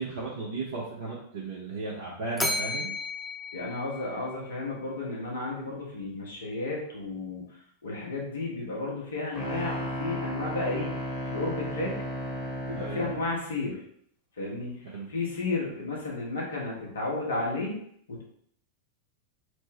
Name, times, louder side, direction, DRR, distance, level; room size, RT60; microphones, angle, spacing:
voice 1, 0.0-2.9 12.7-13.1 14.8-15.1, right 3 dB, 60° right, -6 dB, 0.7 m, -35 dB
Bell, 2.4-4.7, left 1 dB, 5° left, 0.4 m, -33 dB
voice 2, 3.5-7.4 7.8-10.9 11.3-11.9 12.7-13.8 14.4-14.8 15.1-17.8 18.1-18.2, left 2 dB, 65° left, -3 dB, 1.0 m, -32 dB
sound 1, 9.3-13.3, equal, 35° left, 1.1 m, -34 dB
3.1 x 2.1 x 3.3 m, 0.67 s
figure-of-eight pair, 90°, 0 cm